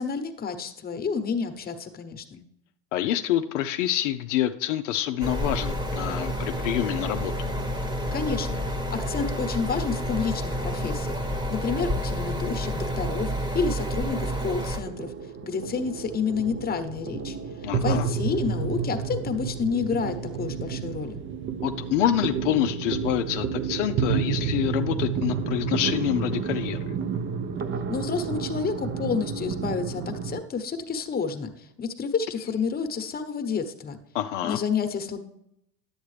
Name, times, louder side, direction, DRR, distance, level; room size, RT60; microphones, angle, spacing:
voice 1, 0.0-2.4 8.1-8.6 8.9-11.2 11.5-15.1 15.4-17.4 17.8-21.2 27.9-34.0 34.4-35.2, left 5 dB, 25° left, 8 dB, 1.0 m, -29 dB
voice 2, 2.9-7.3 17.6-18.1 21.6-26.8 34.1-34.6, left 12 dB, 80° left, 8 dB, 0.5 m, -27 dB
sound 1, 5.2-14.8, equal, 15° right, 1.0 m, -29 dB
sound 2, 13.6-30.4, right 6 dB, 35° right, 0.6 m, -30 dB
10.5 x 8.0 x 3.3 m, 0.79 s
hypercardioid pair, 85°, 36 cm